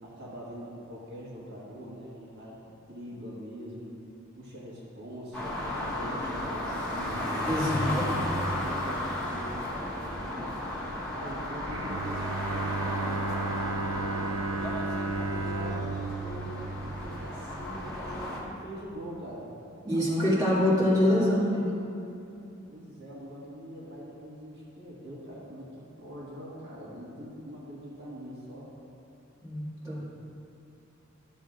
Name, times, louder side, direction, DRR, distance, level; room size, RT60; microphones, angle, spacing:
voice 1, 0.0-4.0 4.3-5.6 5.9-7.5 7.8-10.6 11.1-12.7 13.2-16.6 16.9-19.5 20.1-21.4 22.7-25.7 26.0-28.7 29.9-30.0, equal, 60° right, -6 dB, 1.6 m, -43 dB
sound 1, 5.3-18.4, left 1 dB, 5° left, 1.6 m, -34 dB
voice 2, 7.4-8.3 19.8-21.8 29.4-30.0, left 1 dB, 20° right, -9 dB, 2.0 m, -25 dB
Bowed string instrument, 11.7-17.6, right 3 dB, 85° right, 0.5 m, -34 dB
13.0 x 7.1 x 2.5 m, 2.7 s
head